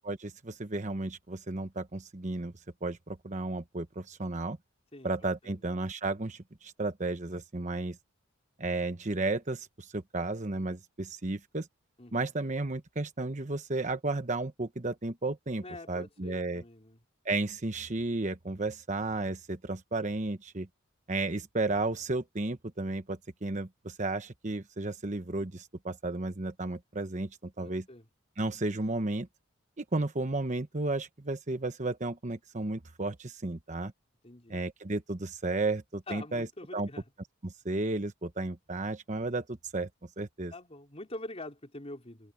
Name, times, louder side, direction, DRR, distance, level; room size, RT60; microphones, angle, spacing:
voice 1, 0.0-2.5 2.8-4.6 5.0-8.0 8.6-11.7 12.1-16.6 17.2-20.7 21.1-27.8 28.4-29.3 29.8-33.9 34.5-36.5 36.7-36.9 37.4-39.9 40.2-40.5, right 2 dB, 35° right, 1.1 m, -33 dB
voice 2, 15.6-17.0 27.6-28.1 34.2-34.6 36.1-37.0 40.5-42.3, left 2 dB, 30° left, 4.0 m, -45 dB
head